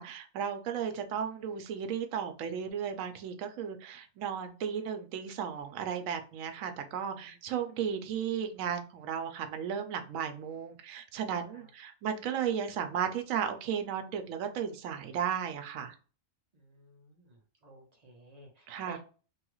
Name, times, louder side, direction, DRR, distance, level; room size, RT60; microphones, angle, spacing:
voice 1, 0.0-15.9 18.7-19.0, right 8 dB, 80° right, 6 dB, 1.0 m, -35 dB
voice 2, 6.7-7.4 11.5-11.7 16.5-17.4 17.6-19.0, right 3 dB, 40° right, 1 dB, 0.6 m, -54 dB
3.2 x 2.3 x 3.0 m, 0.36 s
omnidirectional pair, 1.4 m